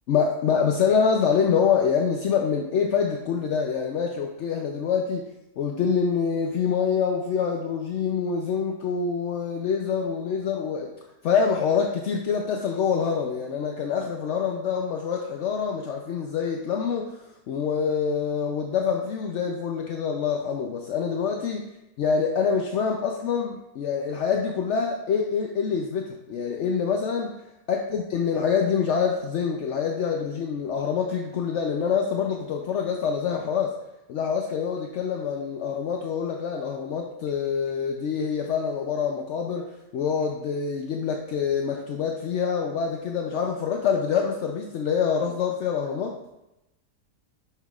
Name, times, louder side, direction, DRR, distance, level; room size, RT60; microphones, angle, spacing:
voice 1, 0.1-5.3 5.6-10.9 11.2-21.7 22.0-27.3 27.7-33.8 34.1-46.1, left 6 dB, 65° left, 2 dB, 0.7 m, -26 dB
9.7 x 5.7 x 2.4 m, 0.92 s
omnidirectional pair, 1.7 m